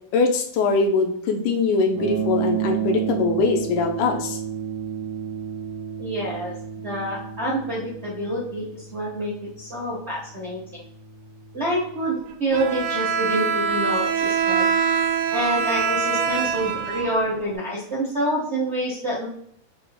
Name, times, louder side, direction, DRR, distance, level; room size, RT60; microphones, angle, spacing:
voice 1, 0.1-4.4, left 4 dB, 85° left, 3 dB, 2.2 m, -22 dB
sound 1, 1.9-12.0, right 9 dB, 45° right, 2.2 m, -32 dB
voice 2, 6.0-6.5 6.8-10.6 11.5-14.7 15.3-19.3, right 1 dB, 65° right, -8 dB, 0.6 m, -27 dB
Bowed string instrument, 12.5-17.6, right 6 dB, 80° right, 1.9 m, -23 dB
5.7 x 3.8 x 2.2 m, 0.67 s
omnidirectional pair, 3.5 m